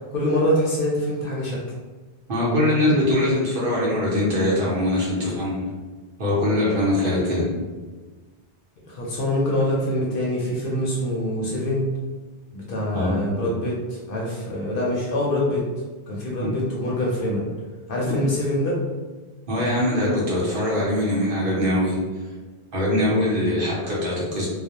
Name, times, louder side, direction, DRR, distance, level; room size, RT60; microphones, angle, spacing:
voice 1, 0.0-1.6 8.9-11.8 12.5-15.6 16.1-17.5 17.9-18.8, left 1 dB, 60° left, -4 dB, 0.7 m, -25 dB
voice 2, 2.3-5.6 6.2-7.5 12.9-13.2 16.4-16.5 18.0-18.2 19.5-22.0 22.7-24.5, left 1 dB, 55° right, -6 dB, 0.9 m, -22 dB
2.3 x 2.0 x 2.8 m, 1.3 s
omnidirectional pair, 1.1 m